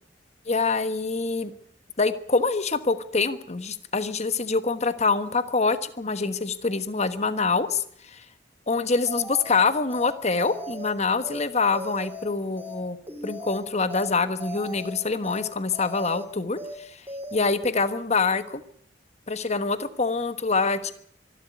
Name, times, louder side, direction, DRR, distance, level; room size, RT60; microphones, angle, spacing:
voice 1, 0.5-1.5 2.0-7.8 8.1-8.2 8.7-13.0 13.2-16.9 17.3-18.6 19.3-20.9, left 4 dB, 40° left, 12 dB, 1.3 m, -25 dB
sound 1, 9.1-9.6 9.9-10.1 10.4-10.9 11.2-11.4 11.7-12.2 12.6-12.7 13.1-13.6 13.9-14.1 14.4-14.9 15.2-15.4 15.7-16.2 16.6-16.7 17.1-17.4, equal, 15° right, 5.4 m, -37 dB
25.0 x 12.0 x 9.4 m, 0.65 s
head